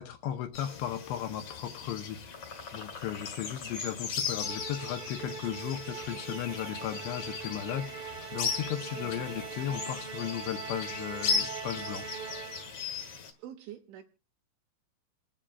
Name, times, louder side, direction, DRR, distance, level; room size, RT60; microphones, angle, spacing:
voice 1, 0.0-12.2, left 11 dB, 75° left, 6 dB, 2.7 m, -36 dB
sound 1, 0.5-13.3, left 5 dB, 55° left, 1.9 m, -37 dB
Musical instrument, 4.4-12.9, right 7 dB, 60° right, 2.0 m, -42 dB
voice 2, 8.9-9.2 13.4-14.0, right 11 dB, 75° right, 2 dB, 3.0 m, -46 dB
28.0 x 10.0 x 2.4 m, 0.31 s
omnidirectional pair, 5.6 m